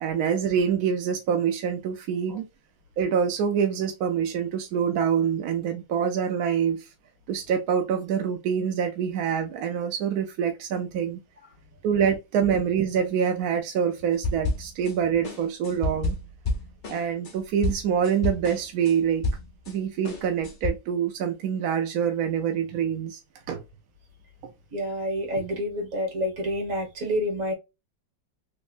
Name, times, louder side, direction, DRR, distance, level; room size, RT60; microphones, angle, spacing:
voice 1, 0.0-2.4 3.0-6.9 7.3-11.2 11.8-16.2 16.9-19.3 19.7-23.2 23.5-23.6 24.4-24.5, right 7 dB, 75° right, 0.9 m, -25 dB
sound 1, 14.2-14.9 15.2-19.7 20.0-20.7, left 2 dB, 40° left, 0.7 m, -30 dB
voice 2, 24.7-27.5, equal, 45° right, 1.7 m, -28 dB
3.4 x 3.2 x 2.4 m
omnidirectional pair, 2.0 m